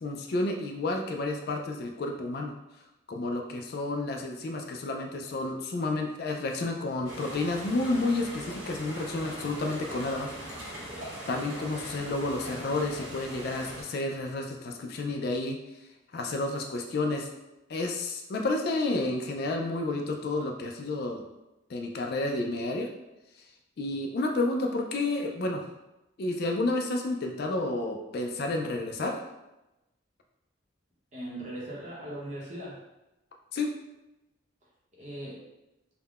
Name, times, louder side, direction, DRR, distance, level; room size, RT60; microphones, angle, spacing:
voice 1, 0.0-2.5 3.1-10.5 11.3-15.6 16.1-17.3 17.7-21.2 21.7-22.9 23.8-25.6 26.2-29.2 33.5-33.7, left 2 dB, 50° left, 2 dB, 0.3 m, -30 dB
sound 1, 7.0-13.8, right 1 dB, 80° right, 1.1 m, -41 dB
voice 2, 31.1-32.8 35.0-35.4, right 1 dB, 35° right, -5 dB, 0.7 m, -39 dB
3.5 x 2.1 x 2.3 m, 0.96 s
head